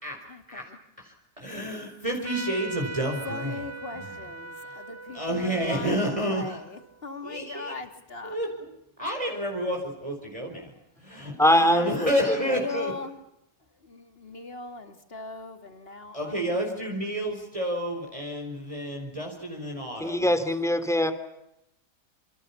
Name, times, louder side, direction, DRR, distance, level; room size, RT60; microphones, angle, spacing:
voice 1, 0.2-0.8 3.2-8.4 11.5-11.9 12.3-13.2 13.9-16.9, left 4 dB, 35° left, 7 dB, 2.7 m, -39 dB
voice 2, 1.0-3.6 5.1-6.6 7.2-7.7 8.2-8.5 9.0-10.7 11.0-12.9 16.1-20.3, right 1 dB, 20° right, 1 dB, 4.9 m, -30 dB
Trumpet, 2.2-7.3, right 3 dB, 35° right, 2.4 m, -41 dB
voice 3, 11.4-12.6 20.0-21.1, left 1 dB, ahead, 10 dB, 2.9 m, -23 dB
28.5 x 27.5 x 7.2 m, 0.83 s
omnidirectional pair, 1.8 m